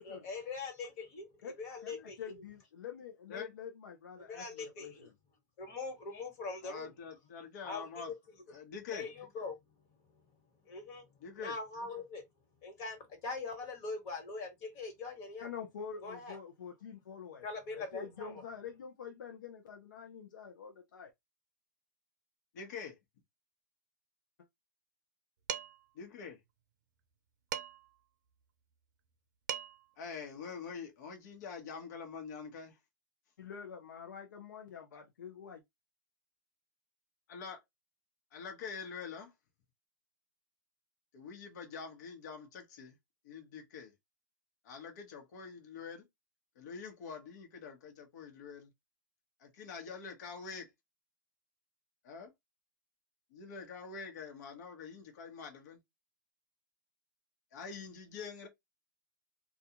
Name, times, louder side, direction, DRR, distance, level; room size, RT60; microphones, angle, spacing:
voice 1, 0.0-2.4 4.2-5.1 5.6-6.9 7.6-8.1 8.9-9.6 10.6-11.1 11.4-12.2 12.6-15.5 16.0-16.4 17.4-18.4, left 4 dB, 45° left, 1.4 m, -42 dB
voice 2, 1.8-5.1 15.4-17.5 17.7-21.1 33.4-35.6, left 7 dB, 85° left, 0.6 m, -46 dB
voice 3, 6.6-8.1 8.5-9.1 11.2-11.6 22.5-23.0 25.9-26.4 30.0-32.8 34.9-35.0 37.3-37.6 38.3-39.3 41.1-42.9 43.2-43.9 44.6-46.0 46.6-48.7 49.4-50.7 52.0-52.3 53.3-55.8 57.5-58.5, left 5 dB, 65° left, 1.0 m, -45 dB
Dishes pots and pans, 25.5-25.9 27.5-28.0 29.1-29.2 29.5-29.9, right 9 dB, 70° right, 0.5 m, -39 dB
2.4 x 2.3 x 2.8 m
hypercardioid pair, 130°, 10 cm